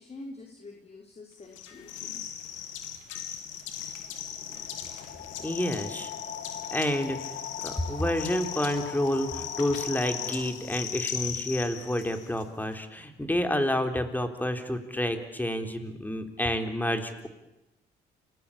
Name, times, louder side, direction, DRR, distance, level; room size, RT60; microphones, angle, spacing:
voice 1, 0.0-2.2, left 2 dB, 35° left, 2 dB, 4.4 m, -46 dB
sound 1, 1.5-12.4, left 9 dB, 90° left, 3.0 m, -38 dB
sound 2, 3.2-11.0, left 8 dB, 55° left, 2.5 m, -42 dB
voice 2, 5.4-6.1 6.7-7.2 7.6-17.3, left 1 dB, 10° left, 7 dB, 3.8 m, -29 dB
28.0 x 19.5 x 8.8 m, 0.99 s
supercardioid pair, 75°, 19 cm